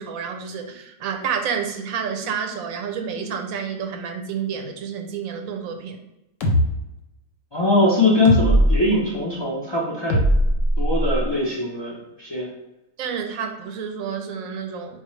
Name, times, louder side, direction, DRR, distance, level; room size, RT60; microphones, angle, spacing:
voice 1, 0.0-6.0 13.0-15.0, right 7 dB, 90° right, 4 dB, 1.0 m, -29 dB
sound 1, 6.4-6.7 8.2-8.8 10.1-11.2, equal, 75° left, 1.0 m, -18 dB
voice 2, 7.5-10.2 10.8-12.5, left 2 dB, 35° left, -4 dB, 0.4 m, -21 dB
4.2 x 2.3 x 3.1 m, 0.94 s
omnidirectional pair, 1.4 m